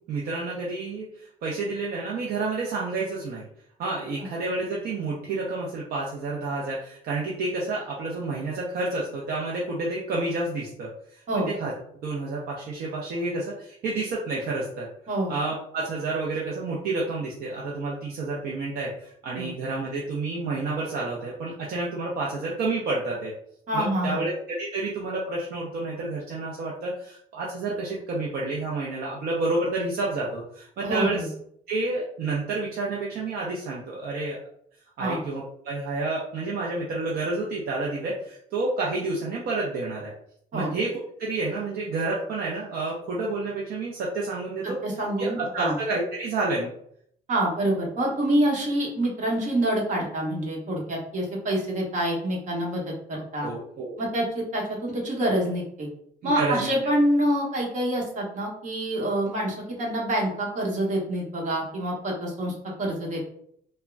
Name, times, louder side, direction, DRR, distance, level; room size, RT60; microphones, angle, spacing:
voice 1, 0.1-3.5 3.8-11.7 12.0-14.9 15.3-23.3 23.7-31.2 31.7-34.4 35.0-40.1 40.5-44.8 45.2-46.7 53.4-54.0 56.2-56.7, right 3 dB, 65° right, -3 dB, 0.6 m, -29 dB
voice 2, 23.7-24.2 30.8-31.3 35.0-35.2 40.5-40.7 44.8-45.8 47.3-53.5 54.0-55.9 56.2-63.2, right 1 dB, 45° right, -3 dB, 1.1 m, -26 dB
3.5 x 2.1 x 2.2 m, 0.68 s
cardioid pair, 110°, 17 cm